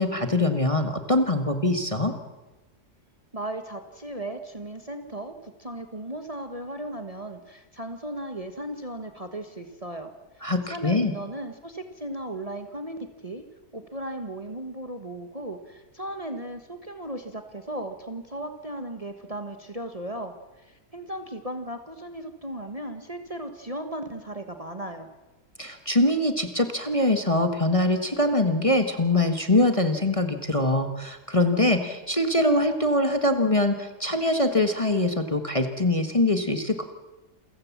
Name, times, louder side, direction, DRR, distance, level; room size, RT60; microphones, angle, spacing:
voice 1, 0.0-2.1 10.4-11.1 25.6-36.8, left 1 dB, 20° left, 7 dB, 1.5 m, -23 dB
voice 2, 3.3-10.1 10.7-13.4 13.7-25.1, right 1 dB, 25° right, 7 dB, 1.5 m, -36 dB
28.0 x 15.5 x 7.4 m, 1.1 s
omnidirectional pair, 1.7 m